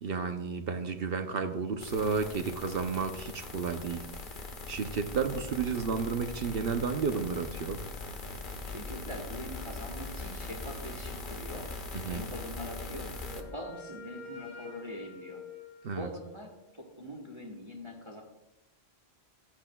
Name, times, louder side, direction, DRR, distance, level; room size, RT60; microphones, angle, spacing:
voice 1, 0.0-4.0 4.7-7.8 11.9-12.3 15.8-16.1, right 5 dB, 65° right, 7 dB, 0.9 m, -32 dB
sound 1, 1.8-13.4, left 2 dB, 50° left, 1.2 m, -41 dB
voice 2, 8.6-15.4 15.9-18.2, equal, 25° right, 1 dB, 1.3 m, -43 dB
Wind instrument woodwind instrument, 12.8-16.6, left 4 dB, 90° left, 3.1 m, -48 dB
14.5 x 10.0 x 2.3 m, 0.91 s
omnidirectional pair, 1.1 m